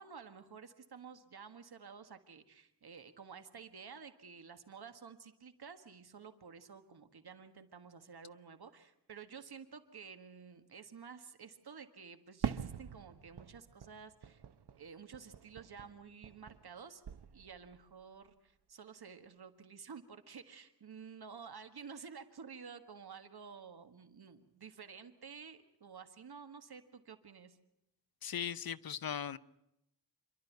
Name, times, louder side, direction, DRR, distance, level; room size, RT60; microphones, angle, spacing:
voice 1, 0.0-14.4 14.8-17.0 17.3-27.6, right 6 dB, 70° right, 1.7 m, -52 dB
Fireworks, 12.4-16.8 17.0-17.8, right 8 dB, 90° right, 0.9 m, -44 dB
voice 2, 28.2-29.4, left 8 dB, 65° left, 0.7 m, -38 dB
27.5 x 12.0 x 9.3 m
wide cardioid pair, 120°, 39 cm